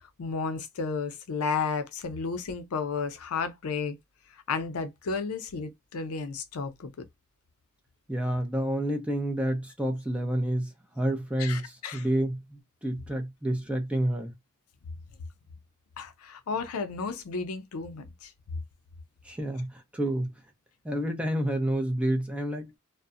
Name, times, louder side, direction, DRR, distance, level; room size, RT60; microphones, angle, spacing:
voice 1, 0.2-4.0 4.5-6.9 11.4-12.1 16.0-18.3, left 5 dB, 80° left, 0.5 m, -32 dB
voice 2, 8.1-14.3 19.2-20.3 20.8-22.8, right 1 dB, 5° right, 0.5 m, -29 dB
2.4 x 2.1 x 2.4 m
head